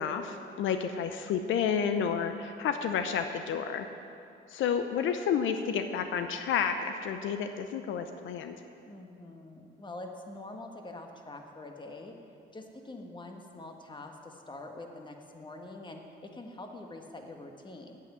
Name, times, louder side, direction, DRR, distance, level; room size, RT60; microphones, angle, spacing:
voice 1, 0.0-3.9 4.5-8.6, left 7 dB, 80° left, 8 dB, 0.7 m, -30 dB
voice 2, 8.9-12.1 12.5-18.0, left 2 dB, 25° left, 3 dB, 1.5 m, -45 dB
8.9 x 8.6 x 9.2 m, 2.5 s
cardioid pair, 90°, 20 cm